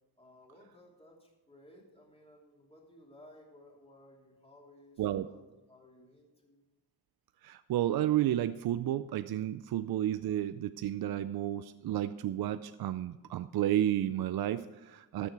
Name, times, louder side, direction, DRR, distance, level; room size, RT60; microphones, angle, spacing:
voice 1, 0.2-6.6, left 1 dB, 15° left, -1 dB, 2.9 m, -58 dB
voice 2, 7.4-15.3, right 12 dB, 55° right, 13 dB, 0.5 m, -31 dB
13.5 x 7.0 x 4.7 m, 1.1 s
cardioid pair, 100°, 44 cm